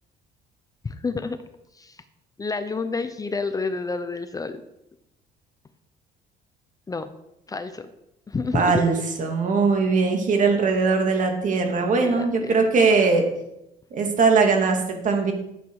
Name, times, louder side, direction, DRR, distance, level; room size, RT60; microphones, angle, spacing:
voice 1, 0.8-1.4 1.8-2.0 2.4-4.6 6.9-7.1 7.5-7.9 8.3-8.8 12.0-12.6, left 4 dB, 20° left, 10 dB, 0.7 m, -29 dB
voice 2, 8.5-13.3 13.9-15.3, right 4 dB, 50° right, 3 dB, 2.5 m, -20 dB
11.5 x 8.2 x 4.9 m, 0.85 s
cardioid pair, 110°, 17 cm